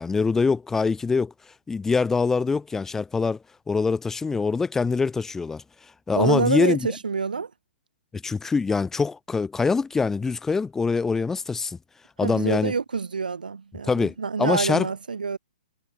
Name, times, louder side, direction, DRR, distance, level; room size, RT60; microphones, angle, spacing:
voice 1, 0.0-1.3 1.7-3.4 3.7-5.6 6.1-6.8 8.1-11.8 12.2-12.7 13.9-14.9, left 4 dB, 10° left, 3.7 m, -24 dB
voice 2, 6.2-7.5 12.2-15.4, right 5 dB, 65° right, 6.0 m, -27 dB
figure-of-eight pair, 120°, 5 cm